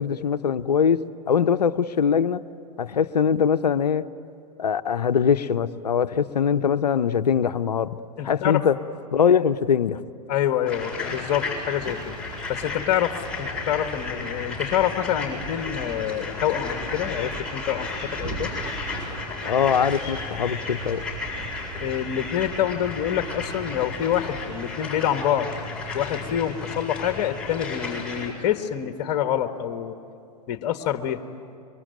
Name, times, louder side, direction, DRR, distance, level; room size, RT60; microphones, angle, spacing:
voice 1, 0.0-2.4 2.8-4.0 4.6-8.0 8.2-8.8 9.1-10.0 19.4-21.1, left 7 dB, 80° left, 0.9 m, -22 dB
voice 2, 8.2-8.7 10.3-12.2 12.5-18.5 21.8-25.5 25.9-29.9 30.5-31.2, left 10 dB, 45° left, 1.6 m, -26 dB
sound 1, 10.7-28.3, left 3 dB, 5° left, 7.7 m, -33 dB
sound 2, 11.8-24.7, right 4 dB, 20° right, 2.9 m, -40 dB
26.5 x 24.0 x 9.3 m
hypercardioid pair, 100°, 21 cm